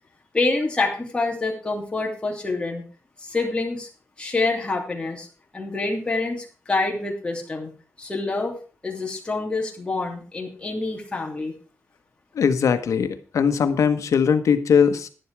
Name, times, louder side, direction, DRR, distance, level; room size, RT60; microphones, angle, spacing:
voice 1, 0.3-2.8 3.2-3.9 4.2-5.3 5.5-7.7 8.0-8.6 8.8-11.5, left 3 dB, 20° left, 0 dB, 2.7 m, -26 dB
voice 2, 12.3-15.1, left 7 dB, 80° left, 10 dB, 1.2 m, -20 dB
11.0 x 10.5 x 4.7 m, 0.37 s
wide cardioid pair, 145°, 5 cm